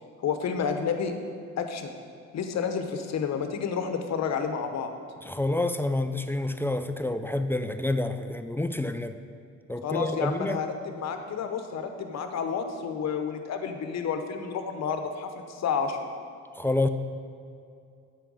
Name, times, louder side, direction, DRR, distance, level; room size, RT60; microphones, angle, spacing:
voice 1, 0.2-1.2 1.6-1.9 2.3-4.9 9.8-16.0, left 6 dB, 60° left, 7 dB, 0.9 m, -30 dB
voice 2, 5.2-9.2 9.7-10.6 16.6-16.9, left 2 dB, 10° left, 9 dB, 0.3 m, -28 dB
9.1 x 4.6 x 6.2 m, 2.5 s
cardioid pair, 90°, 30 cm